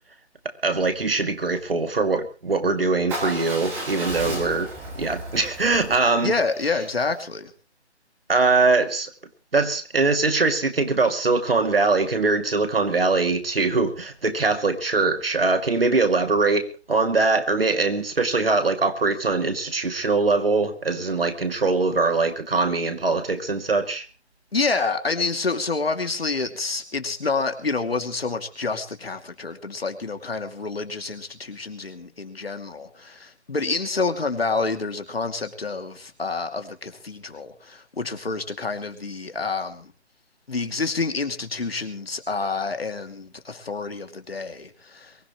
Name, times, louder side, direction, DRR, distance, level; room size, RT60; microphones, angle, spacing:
voice 1, 0.6-4.7 5.0-6.3 8.3-9.1 9.5-24.1, right 3 dB, 55° right, 7 dB, 2.6 m, -22 dB
Motorcycle / Engine starting / Idling, 3.1-7.2, right 1 dB, 5° right, 2.0 m, -34 dB
voice 2, 6.2-7.5 24.5-39.9 40.5-45.2, left 4 dB, 60° left, 7 dB, 2.6 m, -28 dB
23.5 x 15.5 x 3.1 m, 0.34 s
figure-of-eight pair, 160°, 34 cm